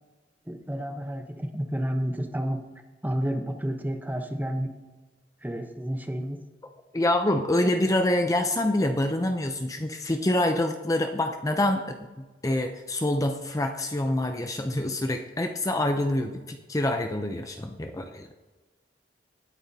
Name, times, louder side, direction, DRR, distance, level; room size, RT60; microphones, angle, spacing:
voice 1, 0.5-2.6 3.0-4.7 5.4-6.4, equal, 10° right, 5 dB, 0.9 m, -30 dB
voice 2, 6.9-11.8 12.4-18.3, left 1 dB, 20° left, 5 dB, 0.6 m, -26 dB
18.0 x 9.2 x 2.8 m, 1.2 s
head